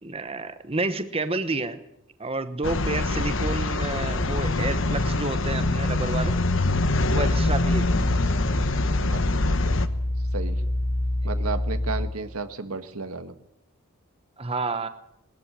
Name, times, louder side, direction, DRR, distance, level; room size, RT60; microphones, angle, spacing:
voice 1, 0.0-1.8 2.2-6.4 7.1-7.9 11.2-11.5 14.4-14.9, right 3 dB, 25° right, 10 dB, 1.1 m, -30 dB
sound 1, 2.6-9.9, left 2 dB, 60° left, 1.2 m, -24 dB
sound 2, 7.0-12.1, left 1 dB, 5° right, 1.6 m, -26 dB
voice 2, 11.2-13.3, right 4 dB, 85° right, 9 dB, 1.7 m, -33 dB
21.0 x 13.5 x 9.8 m, 0.80 s
head